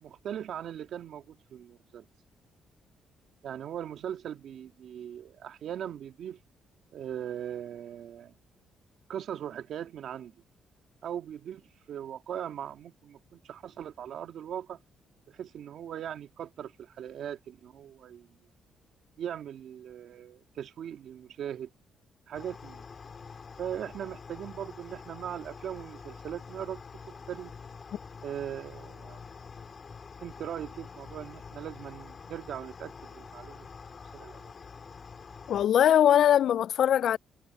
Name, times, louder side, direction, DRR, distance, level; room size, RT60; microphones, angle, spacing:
voice 1, 0.0-2.1 3.4-6.4 6.9-8.3 9.1-10.3 11.0-14.8 15.3-18.3 19.2-21.7 22.3-22.8 23.6-27.5 28.2-29.2 30.2-33.7 34.1-34.5, right 9 dB, 70° right, 1.9 m, -39 dB
sound 1, 22.3-35.7, left 5 dB, 40° left, 5.4 m, -46 dB
voice 2, 35.5-37.2, left 10 dB, 70° left, 0.4 m, -21 dB
cardioid pair, 90°, 0 cm